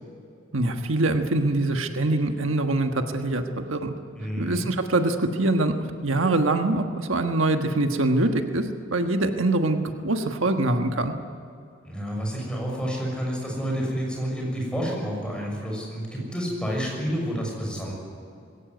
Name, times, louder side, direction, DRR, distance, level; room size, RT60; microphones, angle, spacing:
voice 1, 0.5-3.9 4.4-5.7 6.0-8.6 8.9-11.1, right 2 dB, 85° right, 5 dB, 1.4 m, -24 dB
voice 2, 4.1-4.7 11.8-18.0, equal, 5° left, -2 dB, 6.5 m, -29 dB
21.0 x 17.0 x 9.4 m, 2.5 s
head